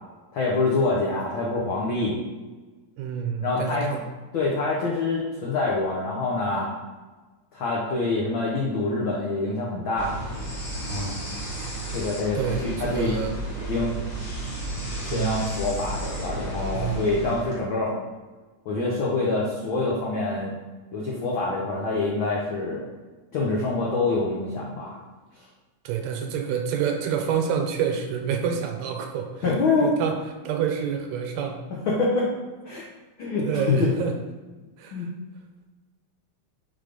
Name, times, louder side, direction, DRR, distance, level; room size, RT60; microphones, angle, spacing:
voice 1, 0.3-2.2 3.4-4.0 4.3-6.7 7.5-10.2 11.9-13.2 13.6-13.9 15.1-17.9 18.6-20.6 20.9-22.9 23.3-25.0 29.4-29.9 31.9-32.3 32.6-32.8 33.2-33.9 34.9-35.1, left 3 dB, 80° left, -4 dB, 1.1 m, -26 dB
voice 2, 3.0-4.0 12.4-13.3 15.1-15.6 16.7-17.1 25.9-29.3 29.8-30.2 30.4-31.6 33.4-34.1 34.8-35.1, right 7 dB, 80° right, 4 dB, 1.9 m, -28 dB
sound 1, 10.0-17.6, right 1 dB, 45° left, 2.6 m, -32 dB
4.9 x 4.0 x 5.1 m, 1.3 s
omnidirectional pair, 3.5 m